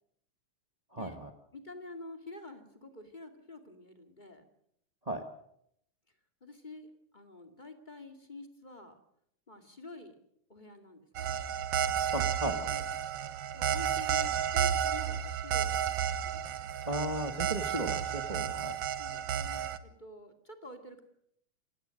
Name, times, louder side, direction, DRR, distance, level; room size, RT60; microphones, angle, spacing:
voice 1, 0.9-1.3 5.0-5.2 12.1-12.7 16.8-18.8, right 1 dB, 50° right, 6 dB, 0.4 m, -35 dB
voice 2, 1.5-4.4 6.4-9.0 9.5-10.2 10.5-11.3 12.7-12.8 13.5-16.4 19.0-21.0, left 2 dB, 15° left, 6 dB, 2.0 m, -48 dB
sound 1, 11.2-19.8, right 9 dB, 65° right, 1.6 m, -32 dB
27.0 x 16.5 x 6.5 m, 0.72 s
omnidirectional pair, 3.6 m